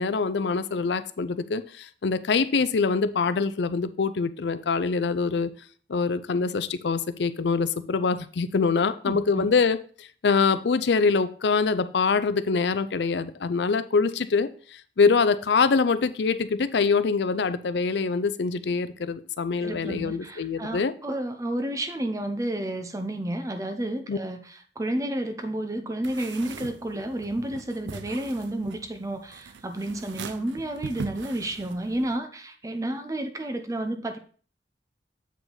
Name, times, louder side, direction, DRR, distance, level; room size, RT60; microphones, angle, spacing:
voice 1, 0.0-5.5 5.9-20.9 24.1-24.2, left 4 dB, 70° left, 0.5 m, -24 dB
voice 2, 9.1-9.5 19.6-24.4 24.8-34.2, right 1 dB, 20° right, 0.6 m, -31 dB
sound 1, 26.0-32.2, right 4 dB, 80° right, 0.5 m, -41 dB
8.0 x 4.9 x 3.9 m
head